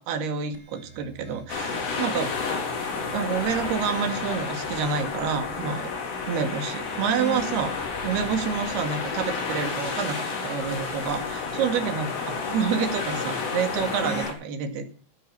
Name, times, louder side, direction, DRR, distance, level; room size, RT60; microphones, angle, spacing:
voice 1, 0.0-2.4 3.1-5.9 6.3-7.8 8.0-12.1 12.4-14.9, right 6 dB, 60° right, 7 dB, 3.7 m, -28 dB
sound 1, 0.5-1.8 2.4-3.5 4.0-5.1 6.6-8.7 9.2-10.4 10.9-12.0 13.5-14.2, right 6 dB, 40° right, 1.0 m, -44 dB
sound 2, 1.5-14.3, left 4 dB, 75° left, 6.6 m, -31 dB
13.5 x 10.5 x 6.2 m, 0.44 s
omnidirectional pair, 5.7 m